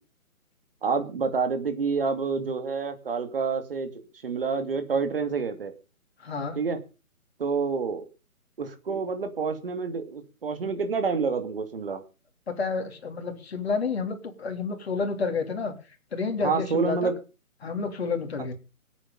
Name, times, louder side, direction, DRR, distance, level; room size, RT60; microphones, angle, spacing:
voice 1, 0.8-3.9 4.2-5.7 6.5-6.8 7.4-8.0 8.6-12.0 16.4-17.1, right 5 dB, 40° right, 7 dB, 2.7 m, -28 dB
voice 2, 6.2-6.6 12.6-15.7 16.1-17.1 17.6-18.5, left 4 dB, 45° left, 5 dB, 3.5 m, -30 dB
17.5 x 9.1 x 5.6 m, 0.34 s
hypercardioid pair, 175°, 42 cm